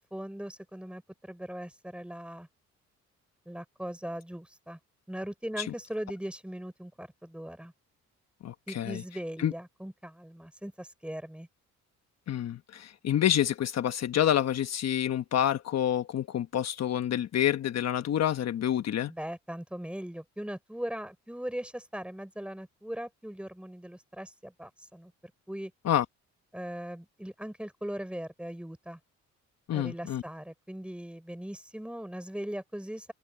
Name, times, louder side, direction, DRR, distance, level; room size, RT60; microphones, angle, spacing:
voice 1, 0.1-2.5 3.5-4.8 5.1-7.7 8.7-11.5 19.1-25.1 25.5-25.7 26.5-29.0 29.7-33.1, equal, 5° right, 5.6 m, -39 dB
voice 2, 8.4-9.0 9.4-9.5 12.3-19.1 25.9-26.0 29.7-30.2, left 10 dB, 60° left, 1.1 m, -28 dB
open air
cardioid pair, 90°, 30 cm